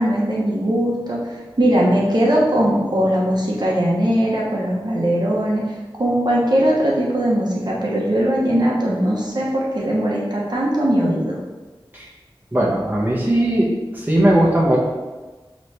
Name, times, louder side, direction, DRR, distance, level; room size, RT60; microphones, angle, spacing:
voice 1, 0.0-11.4, right 1 dB, 50° right, -5 dB, 0.8 m, -20 dB
voice 2, 12.5-13.7 13.9-14.8, right 1 dB, 20° right, -4 dB, 0.8 m, -18 dB
4.0 x 3.0 x 3.3 m, 1.2 s
wide cardioid pair, 55°, 9 cm